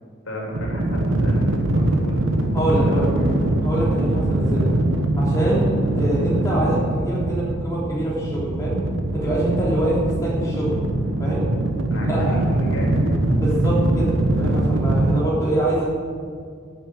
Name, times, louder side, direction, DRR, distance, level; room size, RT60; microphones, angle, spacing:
voice 1, 0.2-2.3 2.8-3.3 11.9-13.2, equal, 85° left, -3 dB, 3.4 m, -32 dB
sound 1, 0.5-15.2, right 1 dB, 75° right, 1.2 m, -22 dB
voice 2, 2.5-3.1 3.6-4.7 5.2-8.8 9.1-10.7 11.2-11.4 12.0-12.4 13.4-14.1 14.4-15.8, right 1 dB, 15° left, -7 dB, 3.5 m, -25 dB
10.5 x 7.3 x 9.0 m, 2.1 s
head